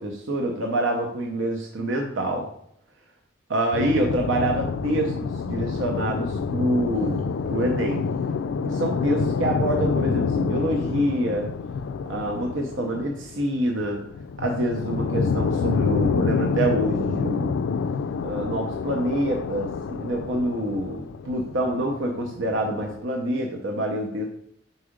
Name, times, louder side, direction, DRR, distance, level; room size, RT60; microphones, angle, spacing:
voice 1, 0.0-2.5 3.5-7.2 7.5-8.0 8.6-11.5 12.1-14.0 14.4-17.5 18.2-24.3, right 1 dB, 80° right, 1 dB, 0.8 m, -26 dB
sound 1, 3.7-23.0, left 5 dB, 85° left, 0.3 m, -28 dB
4.8 x 4.1 x 5.0 m, 0.70 s
head